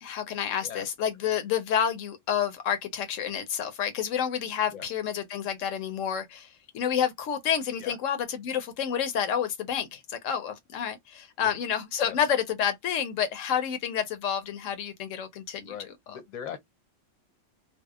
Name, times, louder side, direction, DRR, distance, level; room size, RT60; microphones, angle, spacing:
voice 1, 0.0-15.7, left 8 dB, 85° left, 1.0 m, -29 dB
voice 2, 15.7-16.6, left 8 dB, 45° left, 0.6 m, -40 dB
2.7 x 2.0 x 2.3 m
omnidirectional pair, 1.3 m